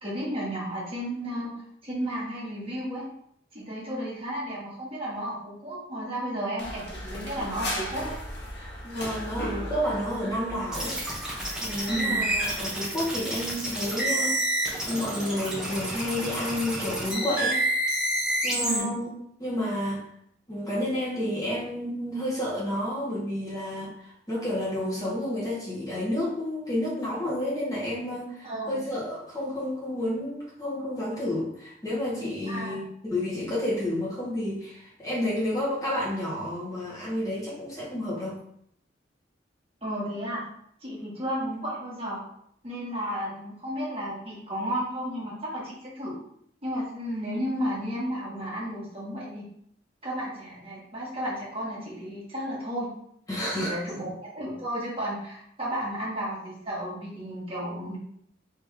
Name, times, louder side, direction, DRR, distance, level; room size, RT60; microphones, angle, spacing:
voice 1, 0.0-1.5 1.8-3.1 3.5-8.2 11.9-12.2 18.6-18.9 28.4-28.8 32.5-32.8 39.8-40.4 40.8-42.2 42.6-46.2 46.6-49.5 50.0-52.9 53.5-58.0, equal, 30° right, -7 dB, 1.8 m, -33 dB
sound 1, 6.6-12.6, left 1 dB, 60° left, 1.2 m, -37 dB
voice 2, 8.8-11.0 11.3-14.3 14.9-17.6 18.4-19.1 19.4-20.1 20.5-32.8 33.1-38.4 53.3-53.7, left 1 dB, 20° left, -7 dB, 1.5 m, -30 dB
sound 2, 10.7-18.8, right 1 dB, 5° right, 1.0 m, -29 dB
3.6 x 3.0 x 4.8 m, 0.70 s
head